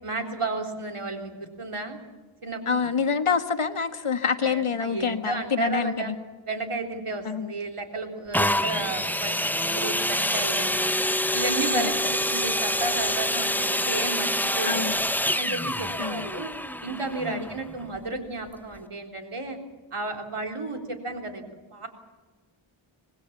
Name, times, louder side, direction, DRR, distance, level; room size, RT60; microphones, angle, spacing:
voice 1, 0.0-2.0 2.4-2.9 4.4-6.1 6.5-10.9 11.3-14.9 15.3-16.5 16.8-19.6 19.9-21.4 21.7-21.9, right 3 dB, 85° right, 3 dB, 3.7 m, -33 dB
voice 2, 2.7-6.1 7.2-7.5 11.7-11.8 14.6-15.0 16.0-16.3 17.2-17.5, left 6 dB, 80° left, 8 dB, 1.5 m, -26 dB
sound 1, 8.3-18.0 18.7-18.8, left 1 dB, 5° left, 0.6 m, -26 dB
25.5 x 20.0 x 7.3 m, 1.3 s
wide cardioid pair, 60°, 50 cm